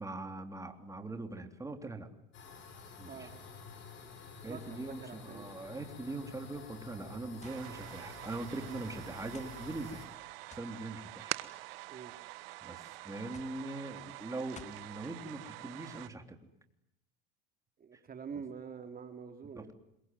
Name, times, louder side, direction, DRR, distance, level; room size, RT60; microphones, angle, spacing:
voice 1, 0.0-2.1 3.0-3.3 4.4-10.0 10.5-11.3 12.6-16.4 19.6-19.7, right 2 dB, 10° right, 6 dB, 3.5 m, -42 dB
sound 1, 2.3-10.1, left 5 dB, 40° left, 7.7 m, -50 dB
voice 2, 3.1-3.4 4.4-5.6 11.9-12.1 17.8-19.7, right 6 dB, 30° right, 6 dB, 2.7 m, -46 dB
sound 2, 7.4-7.7 8.5-8.6 9.3-9.6 10.5-10.8 11.7-12.2 13.3-13.6 14.6-14.9, left 5 dB, 25° left, 2.5 m, -53 dB
sound 3, 7.4-16.1, right 20 dB, 80° right, 1.4 m, -46 dB
26.5 x 23.5 x 9.4 m, 0.84 s
supercardioid pair, 105°, 29 cm